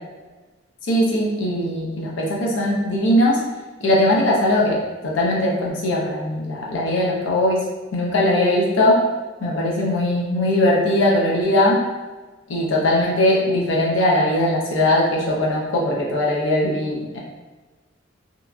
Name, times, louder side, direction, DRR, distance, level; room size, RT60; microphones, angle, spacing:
voice 1, 0.9-3.4 3.8-7.6 7.9-9.0 9.4-11.8 12.5-17.2, left 1 dB, 75° left, -3 dB, 0.5 m, -20 dB
2.8 x 2.2 x 2.4 m, 1.3 s
head